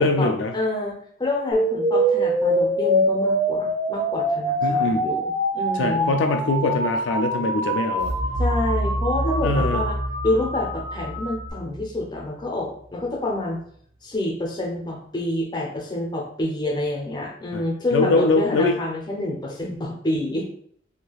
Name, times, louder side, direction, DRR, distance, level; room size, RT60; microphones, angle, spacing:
voice 1, 0.0-0.5 4.6-5.1 5.7-8.1 9.4-9.8 17.5-17.6 17.9-18.8, left 2 dB, 75° left, 5 dB, 0.3 m, -22 dB
voice 2, 0.5-6.1 8.4-10.0 10.2-13.6 14.0-20.4, left 2 dB, 25° left, -1 dB, 0.7 m, -28 dB
sound 1, 1.5-11.5, right 1 dB, 15° right, 1.0 m, -24 dB
sound 2, 8.0-12.9, right 1 dB, 60° right, 0.4 m, -28 dB
3.2 x 2.8 x 2.3 m, 0.62 s
head